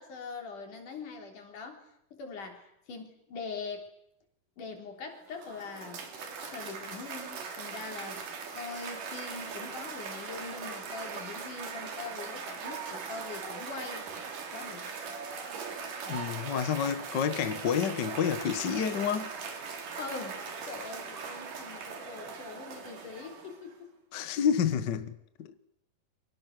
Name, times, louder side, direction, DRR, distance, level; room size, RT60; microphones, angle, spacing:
voice 1, 0.0-3.8 4.6-6.1 6.4-8.2 8.5-14.1 14.5-14.9 20.0-23.9, left 4 dB, 70° left, 4.9 m, -42 dB
Cheering / Applause, 5.1-23.7, right 5 dB, 75° right, 4.2 m, -40 dB
voice 2, 16.1-19.3 24.1-25.6, left 8 dB, 55° left, 1.2 m, -29 dB
29.5 x 24.5 x 6.6 m
omnidirectional pair, 3.8 m